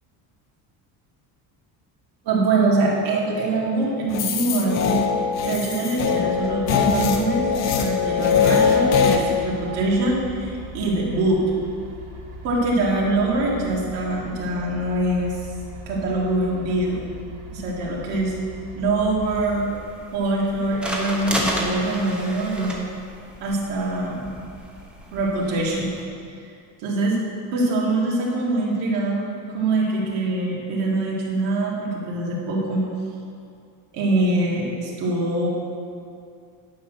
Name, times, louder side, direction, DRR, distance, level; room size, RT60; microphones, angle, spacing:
voice 1, 2.2-5.0 5.4-7.5 7.8-11.4 12.4-15.4 15.9-17.0 17.5-18.3 18.7-19.7 20.1-22.8 23.4-24.3 25.1-25.9 26.8-27.2 27.5-29.3 29.5-32.9 33.9-35.5, right 2 dB, 85° right, -4 dB, 2.4 m, -23 dB
sound 1, 4.1-9.2, left 6 dB, 40° left, 0.8 m, -21 dB
sound 2, 6.3-19.4, left 1 dB, 65° right, 1.7 m, -40 dB
sound 3, 19.2-26.0, equal, 5° right, 0.8 m, -33 dB
10.0 x 5.3 x 6.4 m, 2.4 s
cardioid pair, 170°, 41 cm